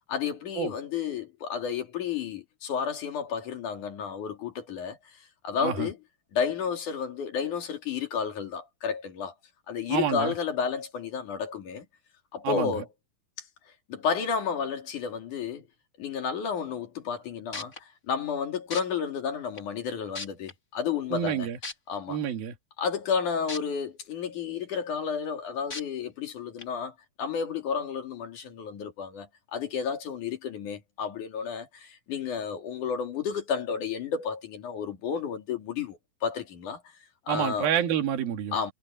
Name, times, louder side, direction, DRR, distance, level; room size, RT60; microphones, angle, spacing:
voice 1, 0.1-5.0 5.4-6.0 6.3-9.3 9.7-11.9 12.3-12.9 13.9-15.7 16.0-17.7 18.1-21.5 21.9-22.2 22.8-36.8 37.3-37.7 38.5-38.7, left 6 dB, 55° left, 3.8 m, -31 dB
voice 2, 9.9-10.3 12.4-12.8 21.1-21.6 22.1-22.5 37.3-38.6, right 9 dB, 65° right, 3.9 m, -28 dB
sound 1, 17.2-17.3 17.5-17.8 18.7-18.8 19.6-19.7 20.1-20.5 21.6-21.7 23.5-23.6 24.1-24.2 25.7-25.8 26.6-26.7, left 3 dB, 25° left, 2.2 m, -35 dB
omnidirectional pair, 4.7 m